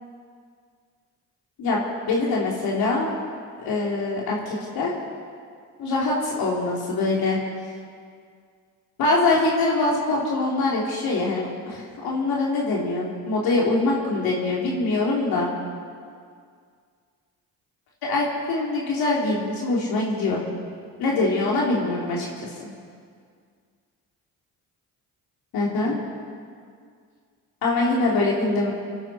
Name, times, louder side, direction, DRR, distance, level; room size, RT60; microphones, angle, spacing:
voice 1, 1.6-3.1 3.6-4.9 5.8-7.4 9.0-15.5 18.0-20.4 21.0-22.3 22.6-22.7 25.5-26.0 27.6-28.7, left 2 dB, 80° left, -4 dB, 3.6 m, -23 dB
25.5 x 11.0 x 4.5 m, 2.1 s
cardioid pair, 75°, 36 cm